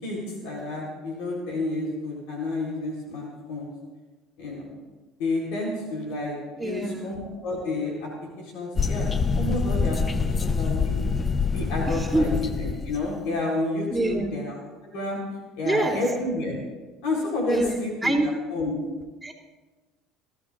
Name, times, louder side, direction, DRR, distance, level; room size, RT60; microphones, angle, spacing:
voice 1, 0.0-3.7 4.4-4.7 5.2-8.1 8.4-11.1 11.5-14.6 14.8-15.2 15.6-16.6 17.0-18.7, left 2 dB, 75° left, -2 dB, 3.9 m, -30 dB
voice 2, 6.6-7.1 11.9-12.2 13.9-14.3 15.6-16.0 17.5-17.7 18.0-18.3 19.2-19.3, right 2 dB, 5° right, -8 dB, 3.1 m, -25 dB
sound 1, 8.8-13.1, left 5 dB, 30° left, 0.7 m, -25 dB
24.0 x 13.5 x 2.6 m, 1.2 s
hypercardioid pair, 75°, 0 cm